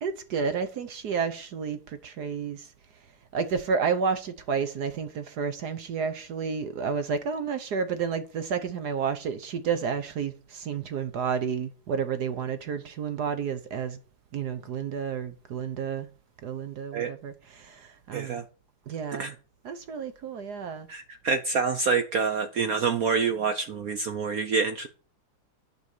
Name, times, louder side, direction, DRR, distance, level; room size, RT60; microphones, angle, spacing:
voice 1, 0.0-2.7 3.3-14.0 14.3-16.1 16.4-18.4 18.9-19.3 19.6-20.9, right 6 dB, 60° right, 1.2 m, -31 dB
voice 2, 18.1-18.4 19.2-19.3 20.9-24.9, right 5 dB, 75° right, 0.8 m, -27 dB
10.5 x 5.5 x 6.6 m
omnidirectional pair, 2.4 m